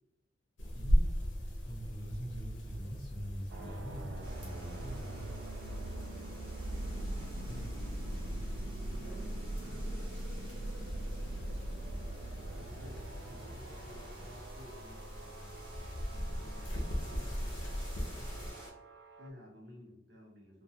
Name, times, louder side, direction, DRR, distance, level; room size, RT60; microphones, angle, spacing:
sound 1, 0.6-18.5, equal, 85° left, 0.5 m, -39 dB
voice 1, 0.7-1.1 1.6-5.4 7.5-7.7, equal, 30° left, -5 dB, 0.4 m, -43 dB
sound 2, 3.5-19.3, right 1 dB, 80° right, 0.3 m, -42 dB
sound 3, 4.2-18.7, equal, 30° right, 0.7 m, -54 dB
voice 2, 7.0-7.7 8.9-11.4 12.5-18.5 19.2-20.6, left 1 dB, 65° right, -2 dB, 0.7 m, -55 dB
2.3 x 2.2 x 2.7 m, 0.96 s
head